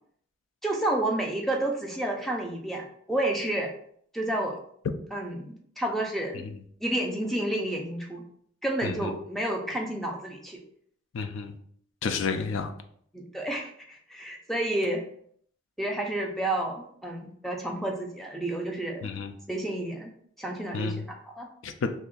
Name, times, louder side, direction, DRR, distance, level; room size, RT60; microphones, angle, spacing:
voice 1, 0.6-3.7 4.1-4.6 5.1-6.5 6.8-8.2 8.6-10.6 13.1-15.0 15.8-19.1 19.5-20.1 20.4-21.5, right 1 dB, ahead, 0.4 m, -30 dB
voice 2, 11.1-11.5 12.0-12.7 19.0-19.3 20.7-21.0 21.6-21.9, left 5 dB, 75° left, 0.4 m, -30 dB
2.7 x 2.4 x 3.8 m
head